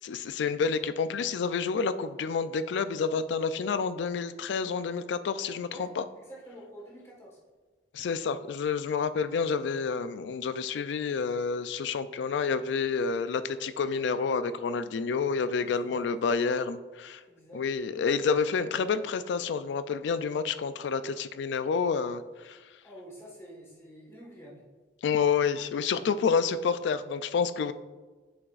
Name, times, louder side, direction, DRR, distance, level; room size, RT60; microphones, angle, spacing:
voice 1, 0.0-6.0 7.9-17.2 17.5-22.6 25.0-27.7, left 5 dB, 80° left, 13 dB, 0.3 m, -29 dB
voice 2, 6.2-7.4 15.6-16.0 17.3-17.6 22.8-24.6, equal, 15° left, -4 dB, 1.5 m, -48 dB
7.8 x 6.1 x 2.4 m, 1.3 s
head